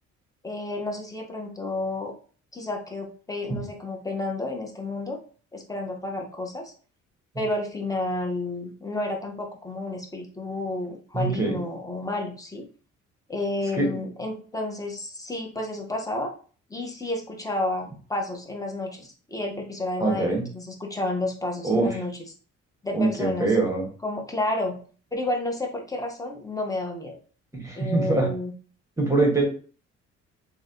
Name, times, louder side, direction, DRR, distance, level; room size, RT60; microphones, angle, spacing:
voice 1, 0.4-2.1 2.5-5.2 5.5-6.7 7.3-12.7 13.3-16.3 16.7-22.2 22.8-23.5 24.0-24.8 25.1-27.2 27.7-28.5, left 2 dB, 10° left, 2 dB, 0.9 m, -31 dB
voice 2, 11.1-11.6 13.7-13.9 20.0-20.4 21.6-21.9 22.9-23.9 27.5-28.3 29.0-29.4, right 3 dB, 10° right, 0 dB, 1.3 m, -23 dB
3.0 x 2.7 x 2.7 m, 0.40 s
cardioid pair, 90°, 30 cm